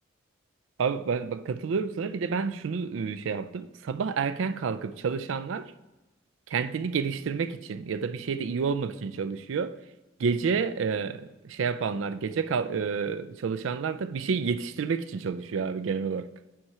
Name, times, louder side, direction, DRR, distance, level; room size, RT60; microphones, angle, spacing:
voice 1, 0.8-5.7 6.5-9.8 10.2-16.3, right 5 dB, 85° right, 0.4 m, -29 dB
7.7 x 4.3 x 4.7 m
head